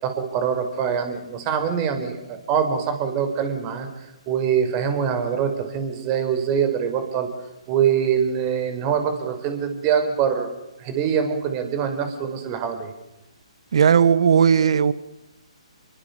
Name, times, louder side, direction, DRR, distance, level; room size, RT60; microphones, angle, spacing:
voice 1, 0.0-3.9 4.3-7.3 7.7-10.5 10.8-12.9, right 7 dB, 30° right, 5.3 m, -24 dB
voice 2, 13.7-14.9, right 7 dB, 60° right, 1.4 m, -16 dB
28.0 x 23.5 x 7.2 m
figure-of-eight pair, 140°, 3 cm